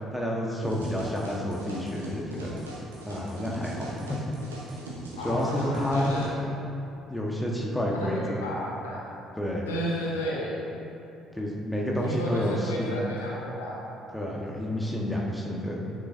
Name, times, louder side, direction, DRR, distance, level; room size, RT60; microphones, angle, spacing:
voice 1, 0.1-2.6 3.1-4.2 4.7-4.8 5.2-6.2 7.1-8.4 9.4-9.7 11.3-13.0 14.1-15.9, equal, 5° left, -3 dB, 1.4 m, -29 dB
sound 1, 0.6-6.3, right 1 dB, 80° right, 1.0 m, -40 dB
voice 2, 5.2-6.3 7.9-9.0 9.7-10.6 12.0-13.7, equal, 75° left, -6 dB, 1.3 m, -32 dB
9.6 x 7.7 x 2.7 m, 2.7 s
figure-of-eight pair, 50°, 0 cm